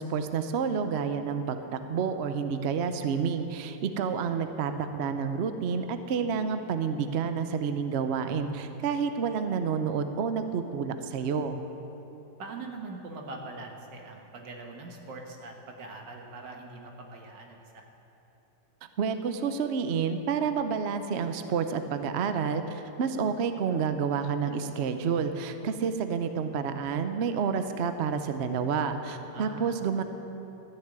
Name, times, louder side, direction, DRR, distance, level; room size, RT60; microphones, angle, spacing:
voice 1, 0.0-1.6 1.9-11.6 19.0-30.0, right 6 dB, 55° right, 9 dB, 0.7 m, -29 dB
voice 2, 12.4-17.9 29.3-29.7, right 3 dB, 85° right, 2 dB, 2.1 m, -42 dB
13.5 x 6.7 x 9.5 m, 2.9 s
omnidirectional pair, 1.9 m